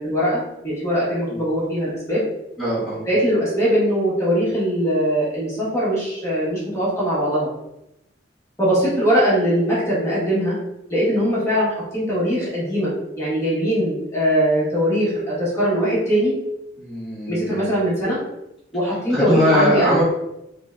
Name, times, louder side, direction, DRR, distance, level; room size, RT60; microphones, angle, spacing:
voice 1, 0.0-2.2 3.1-7.5 8.6-10.6 10.9-16.3 17.3-18.2 18.7-20.0, equal, 15° left, -8 dB, 1.4 m, -21 dB
voice 2, 2.6-3.0 16.8-17.8 19.1-20.0, equal, ahead, -12 dB, 1.2 m, -21 dB
3.9 x 3.3 x 2.5 m, 0.86 s
head